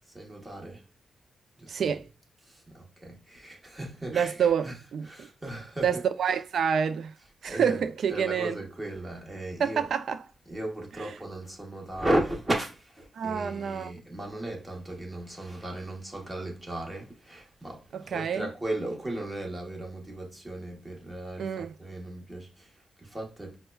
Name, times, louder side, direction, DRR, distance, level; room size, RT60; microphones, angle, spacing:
voice 1, 0.1-0.8 1.6-1.7 2.4-4.8 5.0-6.0 7.5-7.8 8.1-9.8 10.5-23.6, right 1 dB, 15° right, 1.0 m, -35 dB
voice 2, 1.7-2.1 4.1-5.3 5.8-7.1 7.4-8.6 9.6-10.2 11.0-11.1 13.1-13.9 17.9-18.5 21.4-21.7, right 7 dB, 70° right, 0.3 m, -28 dB
5.6 x 2.1 x 2.2 m
wide cardioid pair, 155°, 0 cm